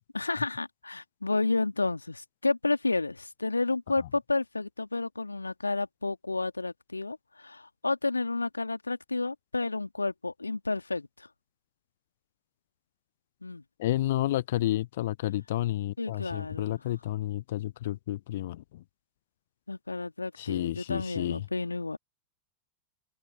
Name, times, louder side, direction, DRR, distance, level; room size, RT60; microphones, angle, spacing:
voice 1, 0.1-11.3 13.4-13.6 16.0-16.8 19.7-22.0, left 3 dB, 80° left, 2.8 m, -31 dB
voice 2, 13.8-18.6 20.4-21.4, left 14 dB, 55° left, 0.5 m, -30 dB
figure-of-eight pair, 90°, 0 cm